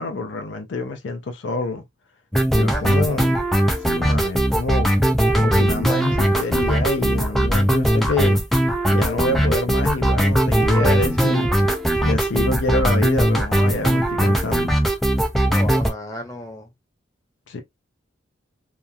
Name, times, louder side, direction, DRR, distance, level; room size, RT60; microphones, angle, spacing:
voice 1, 0.0-1.8 2.5-3.3 3.8-4.9 5.4-8.4 8.9-11.5 12.0-14.7 17.5-17.6, left 2 dB, 75° left, 0.5 m, -26 dB
sound 1, 2.3-15.9, right 1 dB, ahead, 0.3 m, -19 dB
voice 2, 2.7-3.4 15.5-16.7, left 1 dB, 15° left, 0.7 m, -34 dB
2.9 x 2.3 x 2.3 m
head